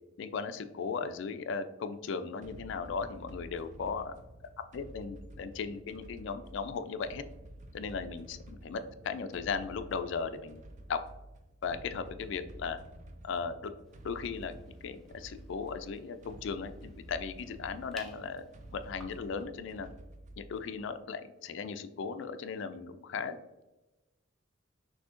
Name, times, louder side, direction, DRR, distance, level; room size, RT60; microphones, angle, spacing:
voice 1, 0.2-4.2 4.7-7.2 7.7-10.6 10.9-11.0 11.6-12.8 13.2-13.7 14.0-19.9 20.4-23.6, left 5 dB, 65° left, 9 dB, 0.3 m, -37 dB
sound 1, 2.4-20.8, right 1 dB, 40° right, 0.4 m, -50 dB
sound 2, 13.8-19.3, left 1 dB, ahead, 0.6 m, -57 dB
6.2 x 2.7 x 2.5 m, 1.0 s
head